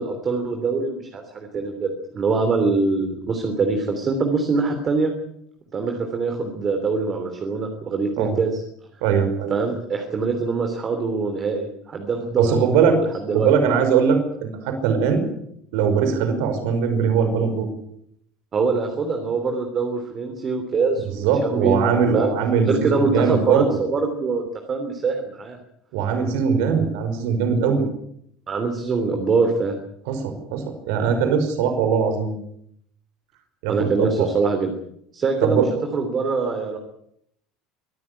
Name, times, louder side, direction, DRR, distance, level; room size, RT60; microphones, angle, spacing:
voice 1, 0.0-5.1 5.7-8.6 9.5-13.5 18.5-22.3 22.7-25.6 28.5-29.8 33.7-34.7 35.1-35.6 35.9-36.8, right 4 dB, 25° right, 5 dB, 3.3 m, -24 dB
voice 2, 9.0-9.6 12.4-13.0 13.3-15.3 15.7-17.7 21.2-23.7 25.9-27.8 30.1-32.3 33.6-34.3 35.4-35.7, right 6 dB, 70° right, 7 dB, 5.5 m, -21 dB
24.5 x 14.0 x 9.8 m, 0.73 s
cardioid pair, 160°, 0 cm